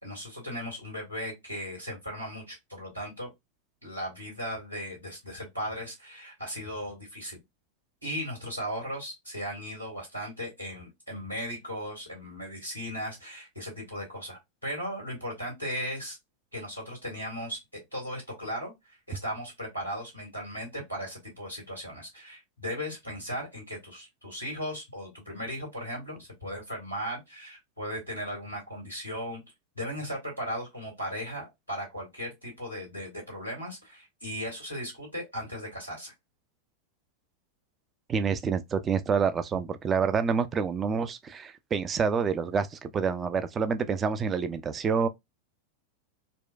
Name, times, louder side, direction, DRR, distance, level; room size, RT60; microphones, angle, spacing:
voice 1, 0.0-3.3 3.8-7.4 8.0-16.2 16.5-29.4 29.8-36.1, equal, 90° right, 2.0 m, -37 dB
voice 2, 38.1-45.1, right 6 dB, 20° right, 0.4 m, -27 dB
4.1 x 2.2 x 2.3 m
figure-of-eight pair, 90°, 0 cm